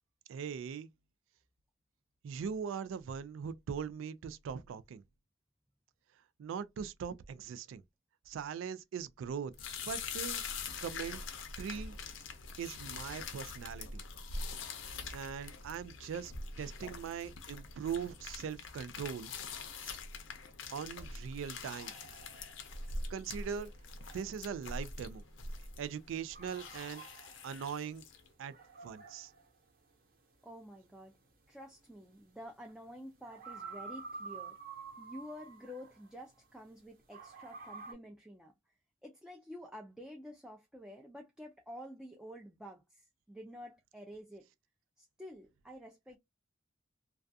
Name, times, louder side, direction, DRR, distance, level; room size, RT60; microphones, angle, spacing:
voice 1, 0.3-0.9 2.2-5.0 6.4-7.8 8.3-9.5 9.8-10.4 10.8-11.2 11.6-12.0 12.6-14.0 15.1-16.3 16.6-19.3 19.8-20.0 20.7-21.9 23.1-23.7 24.1-25.2 25.8-27.0 27.4-28.0 28.4-28.5 28.8-29.3, right 7 dB, 85° right, 0.3 m, -40 dB
sound 1, 9.5-28.3, left 4 dB, 75° left, 0.5 m, -44 dB
sound 2, 21.8-36.7 37.1-37.9, right 4 dB, 50° right, 0.8 m, -51 dB
voice 2, 30.4-31.1 31.5-34.6 35.0-38.5 39.0-44.5 45.0-46.2, equal, 5° right, 0.3 m, -50 dB
2.3 x 2.2 x 2.5 m
head